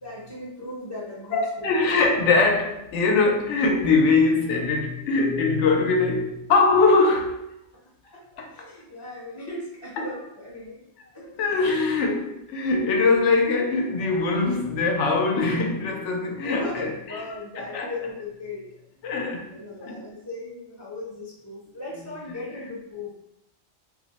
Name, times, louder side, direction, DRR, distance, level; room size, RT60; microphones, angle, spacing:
voice 1, 0.0-1.9 7.7-10.8 11.1-11.3 16.4-18.7 19.5-23.1, left 2 dB, 25° left, 0.6 m, -37 dB
voice 2, 1.3-7.4 8.4-8.5 11.4-17.2 17.6-17.9 19.0-19.5 19.8-20.0, left 3 dB, 85° left, 0.9 m, -22 dB
2.5 x 2.0 x 3.9 m
omnidirectional pair, 1.2 m